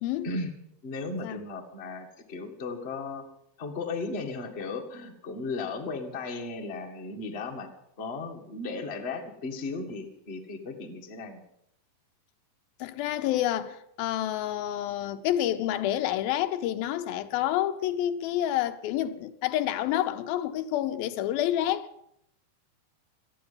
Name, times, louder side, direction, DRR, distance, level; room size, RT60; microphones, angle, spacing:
voice 1, 0.8-3.2 3.6-7.7 8.0-11.4, left 3 dB, 30° left, 1.2 m, -35 dB
voice 2, 12.8-21.9, left 12 dB, 85° left, 2.6 m, -28 dB
18.5 x 14.0 x 5.6 m
omnidirectional pair, 4.1 m